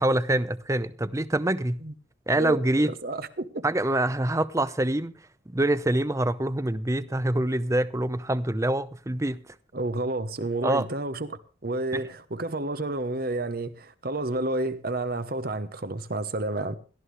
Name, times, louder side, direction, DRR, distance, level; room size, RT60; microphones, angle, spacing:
voice 1, 0.0-1.8 2.3-2.9 3.6-5.1 5.5-9.4 10.6-10.8 11.9-12.0, right 1 dB, 15° right, 0.7 m, -25 dB
voice 2, 2.8-3.6 9.7-16.8, right 2 dB, 55° right, 1.1 m, -30 dB
18.0 x 13.0 x 3.4 m
head